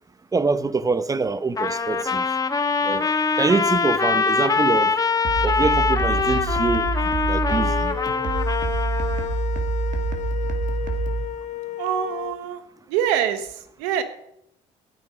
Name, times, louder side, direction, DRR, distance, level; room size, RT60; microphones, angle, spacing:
voice 1, 0.3-2.2 2.8-3.1 3.4-4.9 5.4-8.0, right 4 dB, 25° right, 0.8 m, -25 dB
Trumpet, 1.6-9.4, left 4 dB, 25° left, 1.2 m, -23 dB
sound 1, 5.2-11.3, right 3 dB, 60° right, 2.0 m, -26 dB
sound 2, 7.5-12.3, left 11 dB, 55° left, 0.6 m, -33 dB
voice 2, 11.8-12.6 12.9-13.5 13.8-14.0, right 9 dB, 85° right, 1.2 m, -24 dB
14.5 x 9.3 x 5.1 m
supercardioid pair, 70°, 15 cm